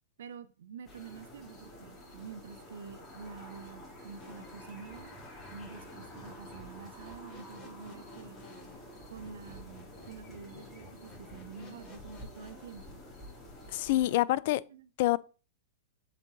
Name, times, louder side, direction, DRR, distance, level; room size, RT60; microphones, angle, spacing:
voice 1, 0.2-5.2 5.5-8.4 9.1-13.0 14.0-14.2 14.7-14.9, right 6 dB, 70° right, 0.6 m, -48 dB
sound 1, 0.8-14.2, left 1 dB, 10° left, 3.2 m, -49 dB
sound 2, 4.2-12.7, left 2 dB, 25° left, 3.0 m, -55 dB
voice 2, 13.7-14.6 15.0-15.2, left 16 dB, 55° left, 0.3 m, -26 dB
7.4 x 3.7 x 4.0 m
hypercardioid pair, 105°, 0 cm